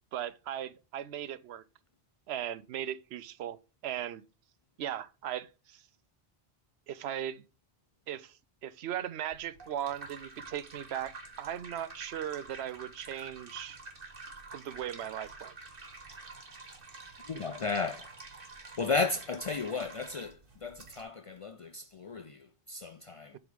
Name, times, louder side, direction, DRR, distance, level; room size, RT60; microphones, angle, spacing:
voice 1, 0.1-1.6 2.3-3.6 3.8-4.2 4.8-5.8 6.9-7.4 8.1-8.4 8.6-13.8 14.5-15.5, right 10 dB, 85° right, 0.9 m, -38 dB
sound 1, 9.3-21.0, right 3 dB, 60° right, 1.6 m, -48 dB
voice 2, 17.3-18.1 18.8-23.4, left 4 dB, 50° left, 0.4 m, -34 dB
7.8 x 3.7 x 5.1 m
omnidirectional pair, 1.1 m